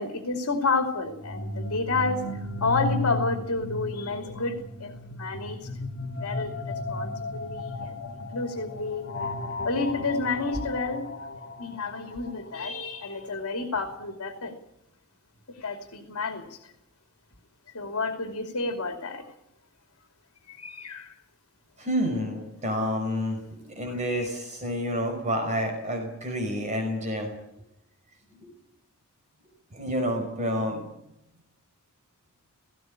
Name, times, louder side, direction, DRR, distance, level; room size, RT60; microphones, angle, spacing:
voice 1, 0.0-2.2 2.6-5.7 6.2-7.9 8.3-9.0 9.6-11.1 11.6-14.5 15.5-16.6 17.7-19.3 20.5-21.1 24.0-24.3, left 3 dB, 70° left, 6 dB, 2.7 m, -30 dB
sound 1, 1.0-12.9, left 2 dB, 50° left, 2.1 m, -35 dB
voice 2, 21.8-27.3 28.3-28.5 29.7-30.9, equal, 35° right, 3 dB, 5.4 m, -29 dB
18.5 x 16.5 x 9.7 m, 0.84 s
head